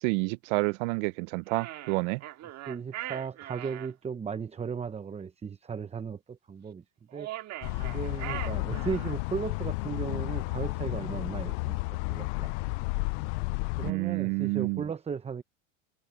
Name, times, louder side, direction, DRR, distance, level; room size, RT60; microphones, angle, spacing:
voice 1, 0.0-2.2 13.8-14.8, right 28 dB, 75° right, 0.7 m, -29 dB
sound 1, 1.5-3.9 7.1-9.2, right 14 dB, 45° right, 1.8 m, -40 dB
voice 2, 2.7-6.8 7.1-7.4 7.8-11.8 12.1-12.5 13.8-15.4, right 6 dB, 15° right, 0.8 m, -36 dB
sound 2, 7.6-13.9, left 27 dB, 70° left, 0.5 m, -32 dB
supercardioid pair, 115°, 36 cm